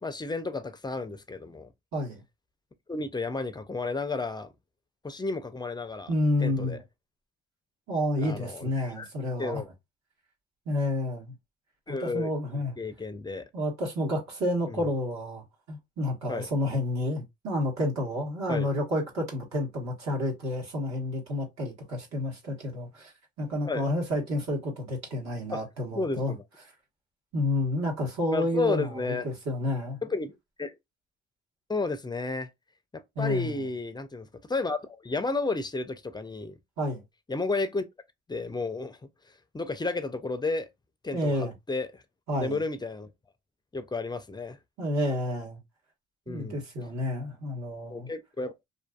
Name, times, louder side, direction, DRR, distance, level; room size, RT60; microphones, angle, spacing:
voice 1, 0.0-1.7 2.9-4.5 5.0-6.1 6.4-6.8 8.2-9.1 9.4-9.7 11.9-13.5 14.7-14.9 16.3-16.5 18.5-18.7 23.7-23.9 25.5-25.6 25.9-26.4 28.3-29.3 30.0-30.7 31.7-32.5 32.9-36.6 37.3-37.8 38.3-39.0 39.5-40.7 41.0-42.0 42.4-43.1 43.7-44.6 46.3-46.6 47.9-48.6, left 3 dB, 15° left, 0.4 m, -32 dB
voice 2, 1.9-2.2 6.1-6.8 7.9-9.6 10.7-11.3 11.9-12.8 13.5-23.1 23.4-26.4 27.3-30.0 33.1-33.6 36.8-37.0 41.1-41.5 42.3-42.6 44.8-45.6 46.3-48.1, left 1 dB, 65° right, 1.2 m, -30 dB
2.6 x 2.5 x 2.3 m
cardioid pair, 90°, 30 cm